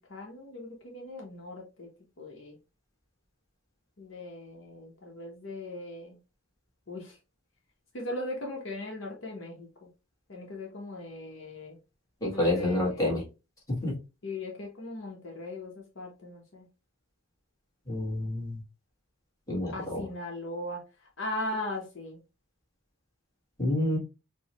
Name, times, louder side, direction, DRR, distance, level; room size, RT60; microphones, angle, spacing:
voice 1, 0.1-1.9 2.2-2.6 4.0-6.2 6.9-7.2 7.9-9.9 10.3-11.8 12.3-13.2 14.2-16.7 19.7-22.2, left 1 dB, 60° left, 0 dB, 0.8 m, -39 dB
voice 2, 12.2-13.2 13.7-13.9 17.9-18.6 19.5-20.0 23.6-24.0, left 1 dB, 15° left, -4 dB, 1.5 m, -28 dB
4.6 x 2.1 x 2.8 m, 0.29 s
head